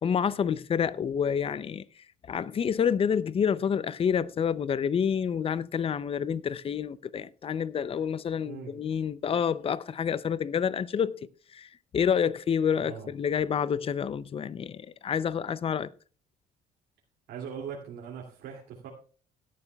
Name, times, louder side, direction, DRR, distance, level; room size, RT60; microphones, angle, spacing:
voice 1, 0.0-1.8 2.3-11.2 11.5-11.7 11.9-15.9, left 7 dB, 35° left, 0.5 m, -28 dB
voice 2, 17.3-18.9, right 7 dB, 80° right, 2.5 m, -40 dB
17.0 x 11.0 x 2.3 m
cardioid pair, 110°, 17 cm